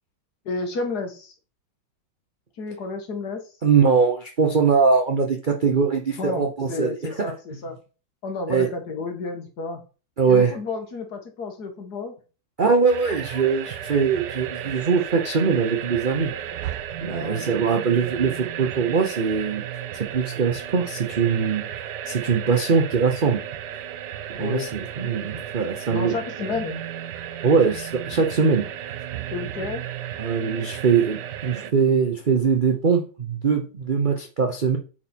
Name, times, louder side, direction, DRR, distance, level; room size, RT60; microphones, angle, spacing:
voice 1, 0.5-1.3 2.6-3.5 6.2-7.8 8.2-9.8 10.3-12.2 17.0-17.8 24.4-24.7 25.9-26.8 29.3-29.9, left 3 dB, 60° left, 5 dB, 2.0 m, -31 dB
voice 2, 3.6-7.3 8.5-8.7 10.2-10.5 12.6-16.3 17.0-19.6 19.9-23.4 24.4-26.2 27.4-28.7 30.2-34.8, right 5 dB, 45° right, 3 dB, 0.6 m, -22 dB
sound 1, 12.9-31.7, right 10 dB, 75° right, 1.2 m, -34 dB
8.7 x 4.2 x 4.4 m, 0.35 s
omnidirectional pair, 2.0 m